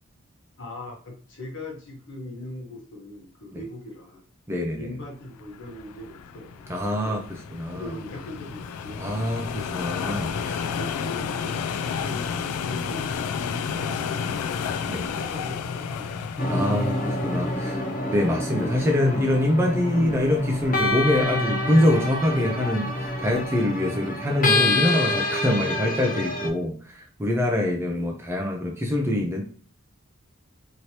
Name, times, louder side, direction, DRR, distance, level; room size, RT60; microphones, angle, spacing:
voice 1, 0.6-4.2 4.8-7.2 7.7-9.1 10.7-14.7 15.0-16.6, left 2 dB, 55° left, 0 dB, 1.0 m, -40 dB
voice 2, 4.5-5.0 6.7-7.2 7.5-7.9 9.0-10.6 14.9-15.1 16.5-17.8 18.1-29.4, left 1 dB, 10° right, 1 dB, 0.4 m, -24 dB
sound 1, 5.4-23.7, left 6 dB, 90° left, 0.3 m, -33 dB
sound 2, 16.4-26.5, left 1 dB, 35° left, 0.6 m, -27 dB
3.0 x 2.9 x 2.8 m, 0.43 s
head